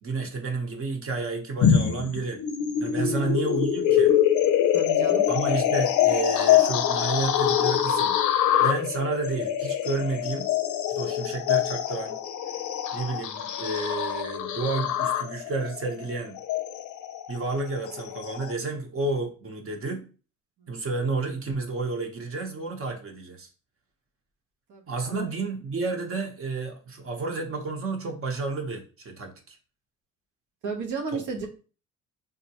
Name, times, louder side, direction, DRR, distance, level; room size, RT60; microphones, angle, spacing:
voice 1, 0.0-2.4 2.8-4.2 5.3-10.5 11.0-12.2 12.9-16.4 17.3-20.1 20.7-23.5 24.9-29.6 31.1-31.5, right 3 dB, 45° right, 4 dB, 0.8 m, -31 dB
sound 1, 1.6-18.5, left 10 dB, 75° left, 0.5 m, -24 dB
voice 2, 3.0-3.4 4.7-5.3 20.6-20.8 24.7-24.8 25.1-25.3 30.6-31.5, right 4 dB, 85° right, 3 dB, 0.8 m, -34 dB
3.6 x 2.1 x 2.8 m, 0.36 s
cardioid pair, 90°, 30 cm